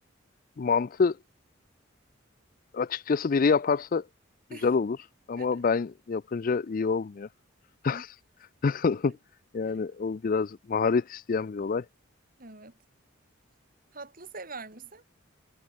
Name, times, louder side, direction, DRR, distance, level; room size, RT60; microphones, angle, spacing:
voice 1, 0.6-1.2 2.7-4.1 4.6-5.0 5.3-7.3 7.8-8.1 8.6-9.2 9.5-11.9, left 5 dB, 45° left, 0.4 m, -26 dB
voice 2, 12.4-12.8 13.9-15.0, right 3 dB, 45° right, 4.6 m, -44 dB
head